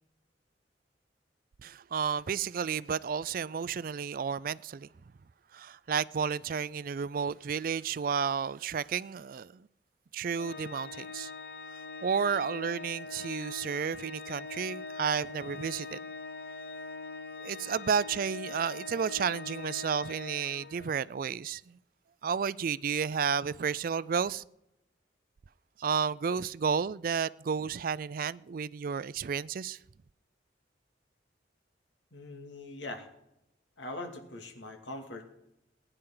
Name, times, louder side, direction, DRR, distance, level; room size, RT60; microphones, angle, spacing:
voice 1, 1.6-4.9 5.5-9.6 10.1-11.3 12.0-16.0 17.4-21.6 22.2-24.4 25.8-29.8, right 6 dB, 50° right, 0.4 m, -32 dB
Organ, 10.4-21.1, left 3 dB, 60° left, 0.8 m, -42 dB
voice 2, 32.1-33.1 33.8-35.2, left 2 dB, 85° left, 2.4 m, -42 dB
20.5 x 10.0 x 3.9 m
head